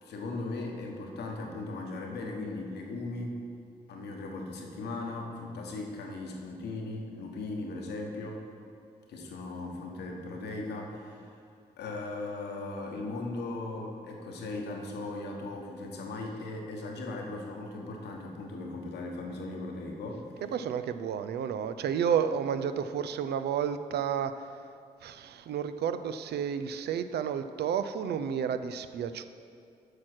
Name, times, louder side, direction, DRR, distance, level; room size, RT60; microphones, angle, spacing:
voice 1, 0.0-3.4 3.9-8.4 9.1-11.4 11.8-20.3, left 2 dB, 85° left, 1 dB, 1.1 m, -38 dB
voice 2, 20.4-24.6 25.0-29.2, right 8 dB, 80° right, 11 dB, 0.4 m, -31 dB
8.4 x 4.9 x 6.1 m, 2.4 s
supercardioid pair, 50°, 17 cm